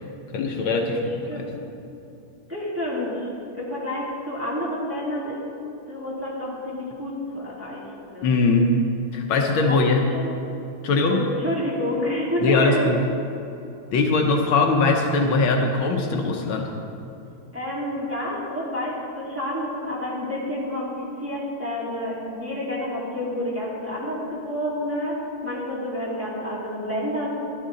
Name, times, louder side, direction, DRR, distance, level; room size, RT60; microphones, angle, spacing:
voice 1, 0.3-1.0 1.3-1.4 8.2-8.8 9.1-10.1 10.8-11.3 12.4-13.0 13.9-16.7, left 3 dB, 75° left, 2 dB, 1.6 m, -21 dB
voice 2, 0.9-1.5 2.5-3.3 3.5-5.4 5.9-7.8 8.1-8.4 9.7-10.3 11.1-12.9 17.5-25.2 25.4-27.3, left 1 dB, 5° right, -7 dB, 2.3 m, -29 dB
12.5 x 12.5 x 3.8 m, 2.8 s
omnidirectional pair, 2.3 m